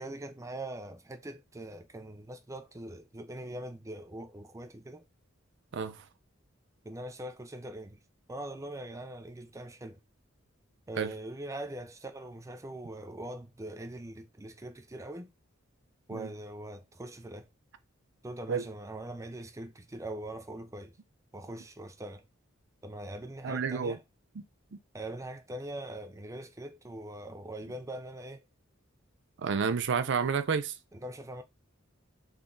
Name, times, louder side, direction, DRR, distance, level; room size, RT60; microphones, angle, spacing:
voice 1, 0.0-5.0 6.8-8.0 8.3-10.0 10.9-15.3 16.1-17.5 18.2-21.0 21.3-22.2 22.8-24.0 24.9-28.4 30.9-31.4, right 1 dB, 15° right, 0.5 m, -42 dB
voice 2, 23.4-24.0 24.7-24.8 29.4-30.7, right 6 dB, 60° right, 0.5 m, -30 dB
3.9 x 3.6 x 3.8 m
head